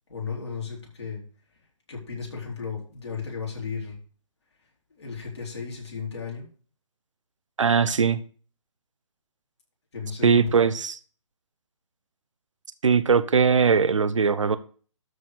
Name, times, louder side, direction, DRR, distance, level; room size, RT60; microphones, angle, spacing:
voice 1, 0.1-1.2 1.9-4.0 4.9-6.5 9.9-10.5, left 5 dB, 55° left, 4.2 m, -34 dB
voice 2, 7.6-8.2 10.2-11.0 12.8-14.6, right 6 dB, 70° right, 0.9 m, -20 dB
12.5 x 4.3 x 6.7 m
figure-of-eight pair, 140°, 17 cm